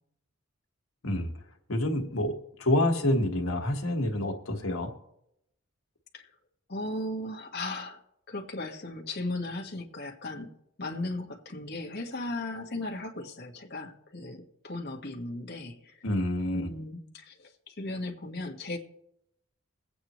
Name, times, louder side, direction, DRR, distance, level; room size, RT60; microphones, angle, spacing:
voice 1, 1.7-2.3 2.6-4.9 16.0-16.7, left 1 dB, 85° left, 3 dB, 1.7 m, -27 dB
voice 2, 6.7-8.0 8.3-10.5 10.8-16.0 16.5-18.8, left 2 dB, 50° left, 1 dB, 1.5 m, -36 dB
21.5 x 8.6 x 3.1 m, 0.79 s
head